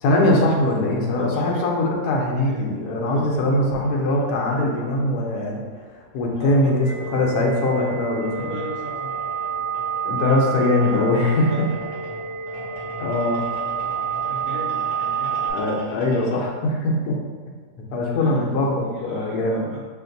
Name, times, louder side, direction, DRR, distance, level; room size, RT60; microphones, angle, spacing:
voice 1, 0.0-5.6 6.1-8.6 10.0-11.7 13.0-13.4 15.5-17.2 17.9-19.6, left 1 dB, 80° left, -1 dB, 1.2 m, -21 dB
voice 2, 1.1-1.7 2.4-2.7 3.0-3.5 6.4-7.9 8.3-9.3 10.9-11.6 14.3-15.4 18.1-19.8, equal, 60° right, -5 dB, 1.1 m, -37 dB
sound 1, 2.4-16.5, left 1 dB, 40° left, 0.8 m, -42 dB
sound 2, 6.8-15.5, right 7 dB, 85° right, 2.1 m, -29 dB
5.6 x 2.5 x 2.6 m, 1.5 s
omnidirectional pair, 1.7 m